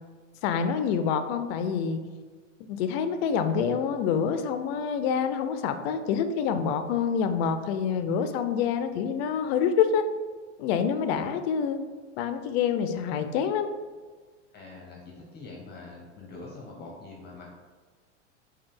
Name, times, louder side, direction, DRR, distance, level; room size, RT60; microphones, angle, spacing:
voice 1, 0.4-2.0 2.7-10.0 10.6-11.8 12.2-13.7, left 7 dB, 60° left, 9 dB, 0.5 m, -27 dB
voice 2, 14.5-17.6, left 3 dB, 30° left, -2 dB, 0.9 m, -44 dB
5.0 x 2.3 x 3.7 m, 1.4 s
hypercardioid pair, 105°, 36 cm